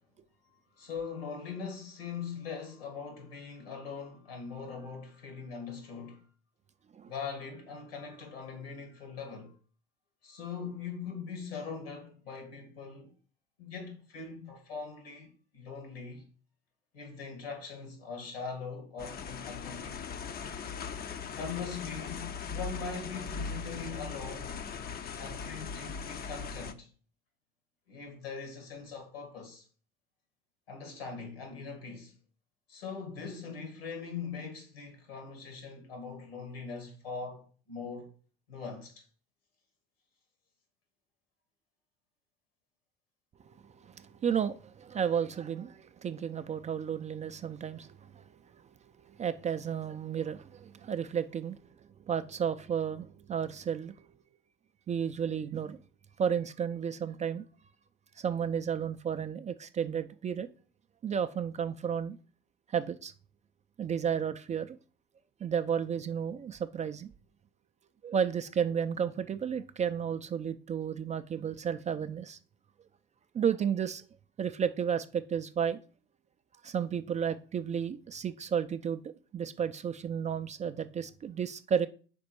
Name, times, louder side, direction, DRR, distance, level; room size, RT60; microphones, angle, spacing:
voice 1, 0.8-6.3 7.1-9.5 10.2-13.1 13.6-16.3 16.9-20.0 21.3-24.5 25.2-26.9 27.9-29.7 30.7-32.1 32.7-38.1 38.5-39.0, left 5 dB, 80° left, 1.9 m, -41 dB
sound 1, 19.0-26.7, left 6 dB, 30° left, 0.6 m, -39 dB
voice 2, 43.4-48.2 48.5-48.7 49.0-51.7 52.0-54.0 54.9-55.8 56.2-57.4 58.2-60.5 61.0-62.2 62.7-63.1 63.8-64.8 65.4-67.1 68.0-72.4 73.3-74.0 74.4-75.8 76.6-81.9, right 8 dB, 25° right, 0.4 m, -32 dB
5.2 x 4.3 x 4.6 m
figure-of-eight pair, 60°, 30 cm